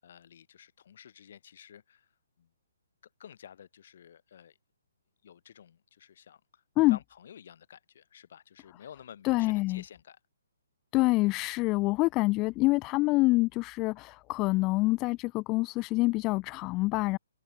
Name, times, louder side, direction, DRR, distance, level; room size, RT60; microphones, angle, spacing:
voice 1, 0.0-2.1 2.4-2.5 3.2-4.6 5.2-10.2, left 9 dB, 50° left, 6.1 m, -51 dB
voice 2, 9.2-9.8 10.9-17.2, left 21 dB, 20° left, 0.6 m, -26 dB
hypercardioid pair, 160°, 0 cm